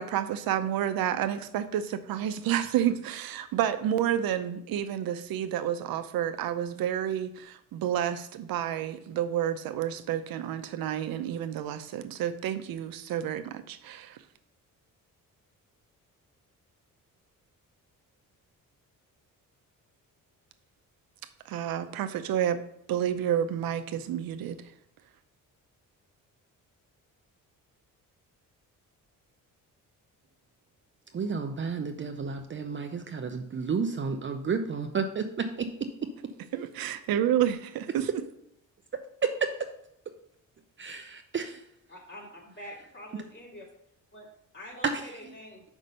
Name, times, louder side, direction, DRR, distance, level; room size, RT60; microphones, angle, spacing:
voice 1, 0.0-14.2 21.5-22.6 22.9-24.6 36.5-38.1, right 10 dB, 85° right, 9 dB, 0.7 m, -30 dB
voice 2, 31.1-35.5 39.4-39.5 40.8-41.6 44.8-45.3, right 5 dB, 35° right, 6 dB, 0.6 m, -31 dB
voice 3, 41.9-43.7 44.1-44.3 44.5-45.6, left 1 dB, 35° left, -2 dB, 3.1 m, -45 dB
6.0 x 5.4 x 5.3 m, 0.74 s
cardioid pair, 95°, 34 cm